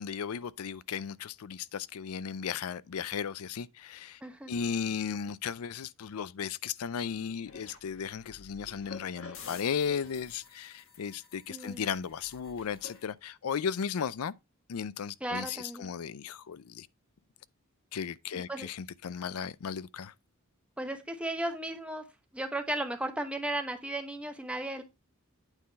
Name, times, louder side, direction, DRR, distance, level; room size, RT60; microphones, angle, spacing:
voice 1, 0.0-4.2 4.5-14.3 14.7-16.9 17.9-20.1, left 7 dB, 85° left, 0.5 m, -35 dB
voice 2, 4.2-4.6 11.5-11.9 15.2-15.9 18.3-18.7 20.8-22.0 22.3-24.8, right 1 dB, 5° right, 1.0 m, -35 dB
sound 1, 7.4-13.0, left 5 dB, 65° left, 1.2 m, -50 dB
9.0 x 3.9 x 4.0 m
head